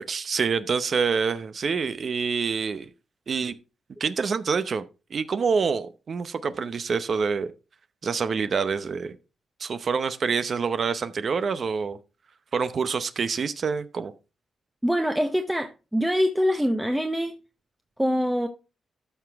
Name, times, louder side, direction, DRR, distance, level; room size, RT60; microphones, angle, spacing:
voice 1, 0.0-2.9 3.3-3.5 4.0-4.8 5.1-7.5 8.0-9.1 9.6-12.0 12.5-14.1, right 5 dB, 45° right, 0.7 m, -26 dB
voice 2, 14.8-17.3 18.0-18.5, equal, 5° right, 0.8 m, -24 dB
12.5 x 5.9 x 3.4 m
cardioid pair, 125°, 0 cm